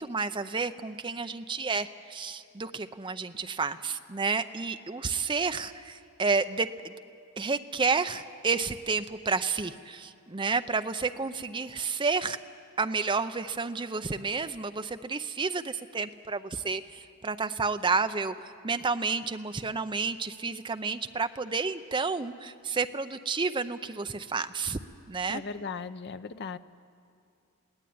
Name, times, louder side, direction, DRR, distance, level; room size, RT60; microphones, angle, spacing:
voice 1, 0.0-6.9 7.4-12.4 12.8-24.8 25.1-25.4, right 4 dB, 20° right, 10 dB, 0.6 m, -30 dB
voice 2, 25.3-26.6, left 5 dB, 50° left, 12 dB, 0.6 m, -37 dB
21.5 x 17.0 x 9.4 m, 2.5 s
head